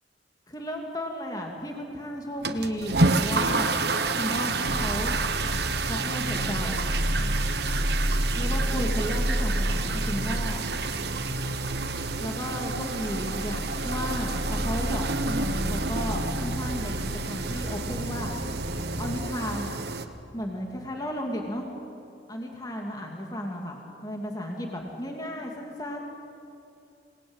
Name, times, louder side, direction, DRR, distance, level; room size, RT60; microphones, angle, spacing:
voice 1, 0.5-3.7 4.1-5.2 5.8-6.9 8.3-10.6 12.2-18.3 19.0-19.8 20.3-21.7 22.3-26.0, equal, 20° left, 1 dB, 2.5 m, -34 dB
sound 1, 2.4-20.1, right 3 dB, 60° right, 1.3 m, -30 dB
sound 2, 4.7-19.2, equal, 35° right, 1.5 m, -31 dB
28.0 x 20.0 x 8.9 m, 2.7 s
head